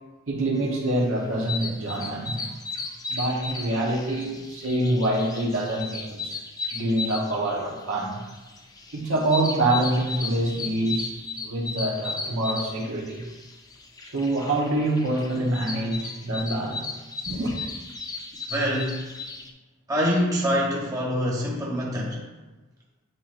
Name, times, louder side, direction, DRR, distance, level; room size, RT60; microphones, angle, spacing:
voice 1, 0.3-2.4 3.1-6.4 6.7-8.2 8.9-11.1 11.4-13.3 14.1-16.8 17.2-17.5, right 1 dB, 80° right, -3 dB, 1.4 m, -26 dB
sound 1, 0.8-19.5, left 4 dB, 15° left, 0.5 m, -36 dB
voice 2, 18.5-19.1 19.9-22.2, equal, 15° right, -5 dB, 1.3 m, -25 dB
9.5 x 4.4 x 2.7 m, 1.2 s
head